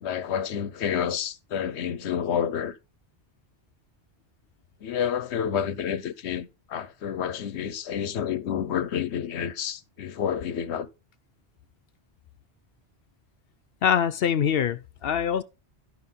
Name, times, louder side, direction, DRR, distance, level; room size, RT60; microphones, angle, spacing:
voice 1, 0.0-2.8 4.8-10.9, left 8 dB, 80° left, 1.0 m, -29 dB
voice 2, 13.8-15.4, left 8 dB, 65° left, 0.8 m, -24 dB
12.5 x 5.1 x 3.7 m
omnidirectional pair, 1.1 m